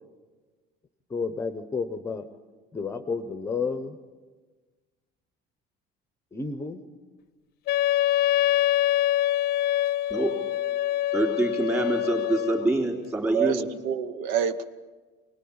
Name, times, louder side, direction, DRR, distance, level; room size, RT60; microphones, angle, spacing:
voice 1, 1.1-2.3 2.7-4.0 6.3-6.8, left 4 dB, 15° left, 9 dB, 0.8 m, -31 dB
Wind instrument woodwind instrument, 7.7-12.7, left 13 dB, 55° left, 0.6 m, -25 dB
voice 2, 11.1-13.7, right 2 dB, 15° right, 1 dB, 3.6 m, -25 dB
voice 3, 13.3-14.6, right 8 dB, 90° right, 12 dB, 1.1 m, -27 dB
24.5 x 19.5 x 8.7 m, 1.3 s
cardioid pair, 175°, 19 cm